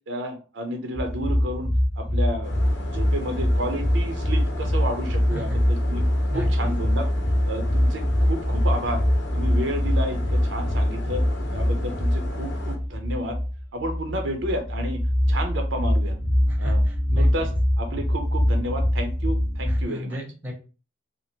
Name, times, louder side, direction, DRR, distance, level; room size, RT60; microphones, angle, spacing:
voice 1, 0.1-2.5 2.8-6.0 6.3-7.1 7.5-9.0 9.3-11.2 11.5-13.4 13.7-15.0 15.3-16.2 16.6-16.8 17.2-20.2, right 1 dB, 70° right, 5 dB, 0.6 m, -31 dB
sound 1, 1.0-19.8, equal, 25° left, 0.7 m, -23 dB
sound 2, 2.4-12.8, left 2 dB, 60° left, 0.7 m, -38 dB
voice 2, 6.3-7.0 16.5-17.3 19.6-20.5, left 1 dB, 10° right, 0 dB, 0.7 m, -35 dB
2.9 x 2.5 x 2.8 m, 0.35 s
head